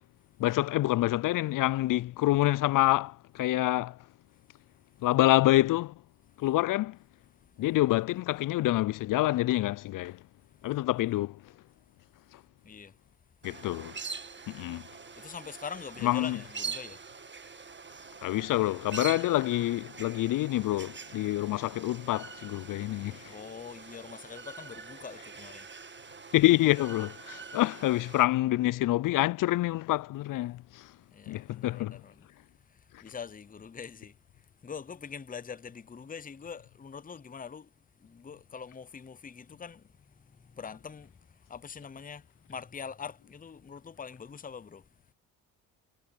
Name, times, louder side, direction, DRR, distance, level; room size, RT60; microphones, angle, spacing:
voice 1, 0.4-4.0 5.0-5.9 6.4-7.0 7.6-10.2 10.6-11.4 13.4-14.0 14.5-14.8 16.0-16.4 18.2-23.3 26.3-30.9 31.3-32.0, left 16 dB, 50° left, 0.5 m, -27 dB
sound 1, 13.4-28.2, right 5 dB, 25° right, 1.7 m, -44 dB
voice 2, 15.2-17.0 23.3-25.7 31.1-32.3 33.0-34.1 34.6-37.7 38.0-39.8 40.5-41.1 41.5-42.2 42.5-44.8, left 6 dB, 20° left, 0.8 m, -43 dB
supercardioid pair, 65°, 42 cm